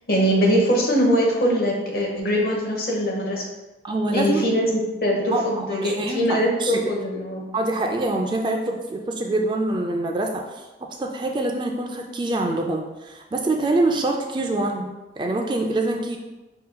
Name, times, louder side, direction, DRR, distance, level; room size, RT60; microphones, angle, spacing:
voice 1, 0.1-3.4 4.1-7.4, equal, 55° left, -1 dB, 1.0 m, -22 dB
voice 2, 3.8-4.4 5.3-6.8 7.5-10.7 11.0-16.2, right 2 dB, 25° right, 2 dB, 0.3 m, -25 dB
5.3 x 3.8 x 2.2 m, 1.1 s
head